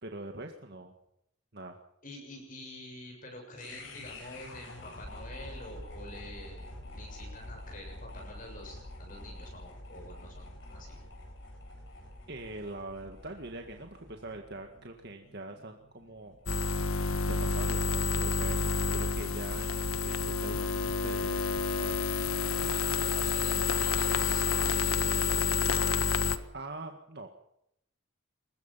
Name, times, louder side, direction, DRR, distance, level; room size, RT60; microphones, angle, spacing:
voice 1, 0.0-0.9 1.5-1.8 12.3-16.8 17.3-22.1 26.5-27.3, right 2 dB, 50° right, 4 dB, 1.9 m, -43 dB
voice 2, 2.0-11.0 22.6-25.6, left 1 dB, 40° left, 1 dB, 7.2 m, -47 dB
sound 1, 3.6-19.8, left 1 dB, 60° left, 8.0 m, -48 dB
sound 2, 16.5-26.4, left 4 dB, 80° left, 1.5 m, -29 dB
24.0 x 21.5 x 5.8 m, 0.77 s
head